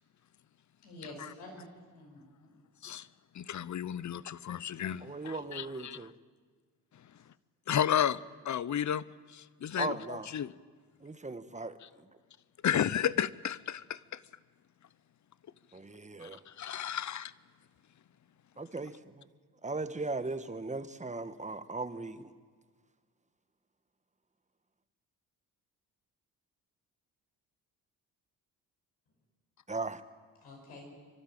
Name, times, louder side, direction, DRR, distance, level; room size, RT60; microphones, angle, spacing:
voice 1, 0.8-1.7 1.9-2.6 30.4-30.8, left 1 dB, 80° left, 5.6 m, -48 dB
voice 2, 3.3-6.1 6.9-7.1 7.7-10.5 11.8-11.9 12.6-14.2 16.2-17.3, left 9 dB, 45° left, 0.7 m, -33 dB
voice 3, 5.0-6.1 9.8-10.3 11.0-11.8 15.7-16.4 18.6-19.3 19.6-22.3 29.7-30.0, right 3 dB, 15° right, 1.4 m, -38 dB
27.5 x 12.5 x 8.9 m
supercardioid pair, 60°, 42 cm